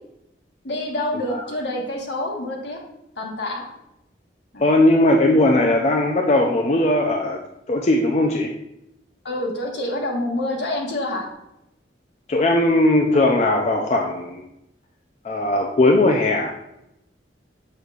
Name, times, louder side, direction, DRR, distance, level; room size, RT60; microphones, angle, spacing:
voice 1, 0.6-2.8 3.2-3.6 4.5-4.8 9.2-11.3, left 1 dB, 70° left, -1 dB, 1.3 m, -27 dB
voice 2, 4.6-7.4 7.7-8.5 12.3-14.4 15.2-16.5, left 1 dB, 35° left, 1 dB, 0.4 m, -18 dB
6.6 x 6.3 x 2.4 m, 0.85 s
head